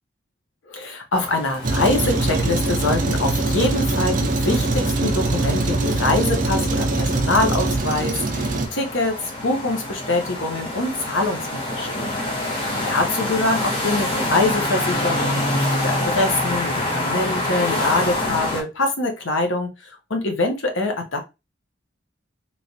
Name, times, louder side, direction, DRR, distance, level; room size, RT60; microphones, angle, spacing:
voice 1, 0.7-12.2 12.4-19.7 20.1-21.2, left 2 dB, 85° left, 3 dB, 0.9 m, -24 dB
sound 1, 1.1-18.6, left 1 dB, 30° left, 1.0 m, -27 dB
Truck, 1.6-8.7, right 2 dB, 45° right, 0.6 m, -22 dB
3.1 x 3.1 x 2.7 m, 0.26 s
head